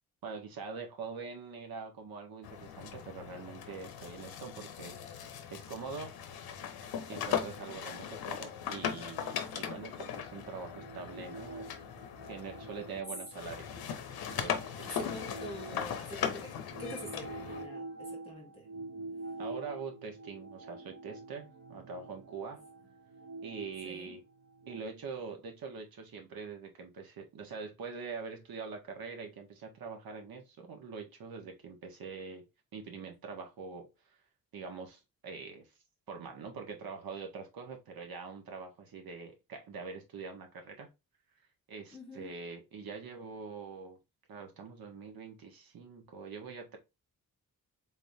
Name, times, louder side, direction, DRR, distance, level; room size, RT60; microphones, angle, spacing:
voice 1, 0.2-5.0 5.5-6.1 7.0-11.7 12.3-13.7 14.3-14.9 19.4-22.6 23.4-24.2 24.7-32.4 32.7-33.9 34.5-35.7 36.1-40.9 41.7-44.0 44.3-46.8, right 5 dB, 75° right, 1.3 m, -44 dB
sound 1, 2.4-13.0 13.3-17.7, left 8 dB, 85° left, 0.7 m, -39 dB
sound 2, 10.4-16.2 16.7-24.8, right 2 dB, 45° right, 0.8 m, -47 dB
voice 2, 14.8-16.5 16.8-18.7 23.8-24.1 41.9-42.3, equal, 15° left, 1.1 m, -45 dB
3.9 x 3.5 x 2.7 m
wide cardioid pair, 135°, 36 cm